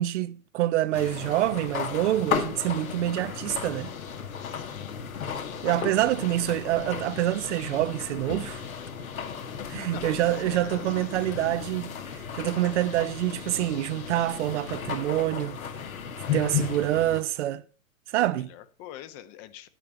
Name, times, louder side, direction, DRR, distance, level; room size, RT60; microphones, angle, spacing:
voice 1, 0.0-3.9 5.6-8.6 9.7-15.6 16.3-17.6 18.1-18.5, right 14 dB, 55° right, 0.8 m, -26 dB
sound 1, 0.9-17.2, left 7 dB, 80° left, 1.8 m, -35 dB
voice 2, 4.4-5.0 5.3-5.6 6.5-6.7 9.9-10.2 10.5-11.7 16.2-16.8 18.5-19.7, left 12 dB, 35° left, 1.0 m, -45 dB
10.0 x 9.7 x 4.2 m
hypercardioid pair, 110°, 42 cm